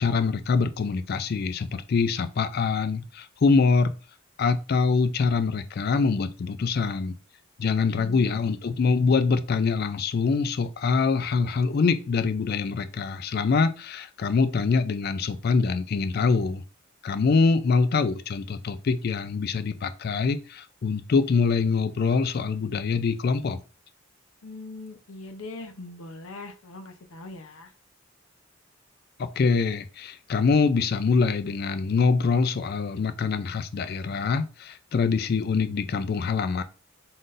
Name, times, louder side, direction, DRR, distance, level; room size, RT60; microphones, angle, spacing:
voice 1, 0.0-3.9 4.4-7.2 7.6-16.6 17.0-23.6 29.2-36.6, left 4 dB, 45° left, 0.3 m, -24 dB
voice 2, 8.0-8.6 24.4-27.7, left 2 dB, 85° left, 0.7 m, -41 dB
3.9 x 3.8 x 2.5 m
head